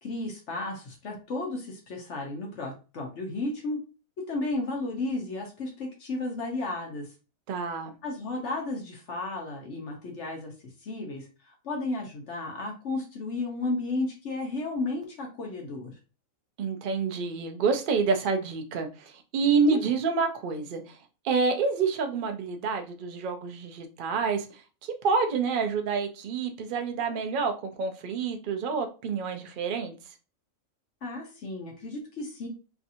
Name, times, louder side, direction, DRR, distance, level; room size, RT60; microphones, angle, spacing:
voice 1, 0.0-3.8 4.3-7.1 8.0-10.5 10.8-15.9 19.7-19.9 31.0-32.5, left 2 dB, 60° left, 1.1 m, -33 dB
voice 2, 7.5-7.9 16.6-21.0 21.2-24.5 24.8-29.9, right 5 dB, 60° right, 0.5 m, -28 dB
3.2 x 2.7 x 2.5 m
omnidirectional pair, 1.4 m